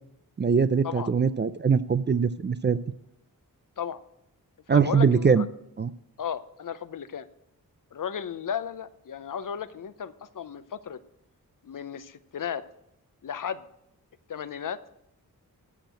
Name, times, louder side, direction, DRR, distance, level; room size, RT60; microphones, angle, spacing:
voice 1, 0.4-2.8 4.7-5.5 5.8-5.9, right 6 dB, 30° right, 15 dB, 0.4 m, -22 dB
voice 2, 4.7-5.5 6.2-7.3 7.9-11.0 11.6-12.6 13.2-13.6 14.3-14.8, left 8 dB, 55° left, 14 dB, 0.7 m, -34 dB
13.0 x 4.5 x 7.7 m, 0.82 s
cardioid pair, 60°, 37 cm